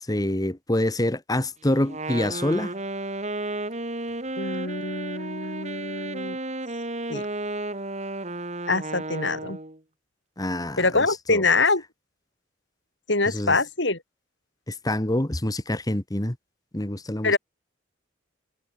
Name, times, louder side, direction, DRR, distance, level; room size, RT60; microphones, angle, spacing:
voice 1, 0.1-2.7 10.4-11.4 13.3-13.6 14.7-16.4 16.7-17.3, left 1 dB, 20° left, 1.5 m, -26 dB
Wind instrument woodwind instrument, 1.8-9.8, right 2 dB, 35° right, 3.9 m, -33 dB
voice 2, 4.4-6.4 7.1-7.3 8.7-9.6 10.8-11.8 13.1-14.0 17.2-17.4, left 3 dB, 65° left, 5.3 m, -24 dB
head